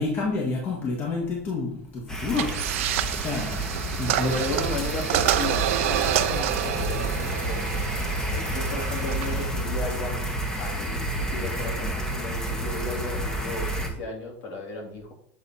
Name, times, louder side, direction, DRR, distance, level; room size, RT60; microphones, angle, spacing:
voice 1, 0.0-2.6 3.2-4.4, left 3 dB, 30° left, -2 dB, 1.6 m, -29 dB
sound 1, 2.1-13.9, right 1 dB, 10° left, 1.3 m, -30 dB
sound 2, 2.3-9.4, right 13 dB, 75° right, 0.5 m, -28 dB
voice 2, 4.2-10.2 10.6-15.1, left 2 dB, 60° left, -2 dB, 3.0 m, -34 dB
8.0 x 4.1 x 4.2 m, 0.64 s
supercardioid pair, 130°, 7 cm